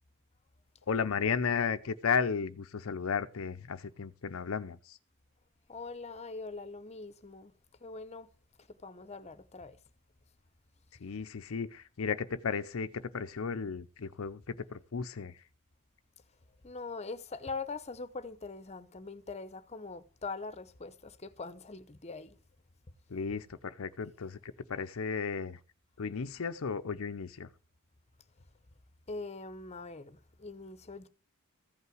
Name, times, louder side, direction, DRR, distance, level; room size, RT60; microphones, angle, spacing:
voice 1, 0.9-5.0 11.0-15.5 23.1-25.6 26.0-27.5, left 6 dB, 70° left, 0.6 m, -34 dB
voice 2, 5.7-7.5 7.8-8.3 8.6-9.8 16.6-22.4 29.1-31.1, left 3 dB, 30° left, 0.8 m, -42 dB
15.0 x 5.6 x 7.7 m
head